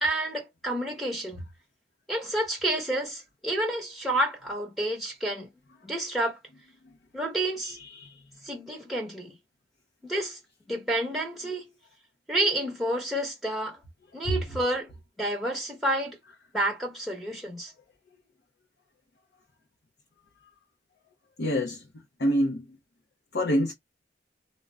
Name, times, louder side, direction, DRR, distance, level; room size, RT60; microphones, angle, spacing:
voice 1, 0.0-1.4 2.1-5.5 5.8-6.4 7.1-7.8 8.4-9.3 10.0-10.4 10.7-11.7 12.3-13.8 14.1-14.9 15.2-16.2 16.5-17.7, right 1 dB, ahead, 0.9 m, -29 dB
voice 2, 7.6-8.2 21.4-21.8 22.2-22.7 23.3-23.7, equal, 65° left, 0.6 m, -26 dB
2.4 x 2.1 x 3.1 m
head